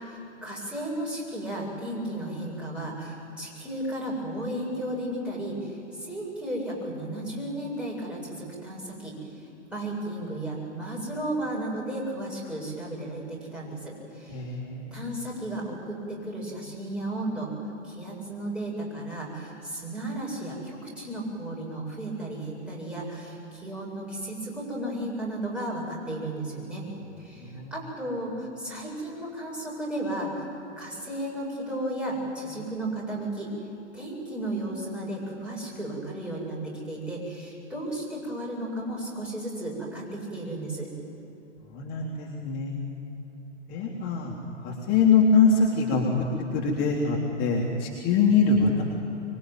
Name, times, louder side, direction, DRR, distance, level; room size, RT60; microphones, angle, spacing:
voice 1, 0.4-9.2 9.7-14.4 14.9-17.5 17.8-26.8 27.2-30.4 30.8-33.5 33.9-40.9, right 1 dB, 5° right, -5 dB, 7.8 m, -34 dB
voice 2, 14.3-15.0 27.4-27.7 41.7-43.0 43.7-44.3 44.6-46.1 46.5-48.8, left 4 dB, 30° left, -3 dB, 3.7 m, -23 dB
25.5 x 23.5 x 9.5 m, 2.9 s
figure-of-eight pair, 115°, 36 cm